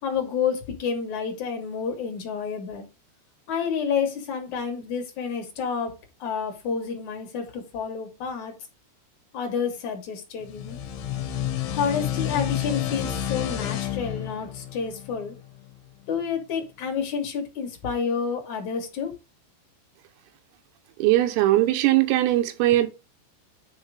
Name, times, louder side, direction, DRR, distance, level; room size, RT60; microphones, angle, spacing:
voice 1, 0.0-2.9 3.5-8.5 9.3-10.8 11.7-15.3 16.1-19.1, left 6 dB, 50° left, 2.6 m, -29 dB
sound 1, 10.4-15.7, left 11 dB, 65° left, 2.8 m, -30 dB
voice 2, 21.0-22.9, right 15 dB, 85° right, 3.7 m, -20 dB
11.0 x 3.7 x 4.9 m
omnidirectional pair, 5.9 m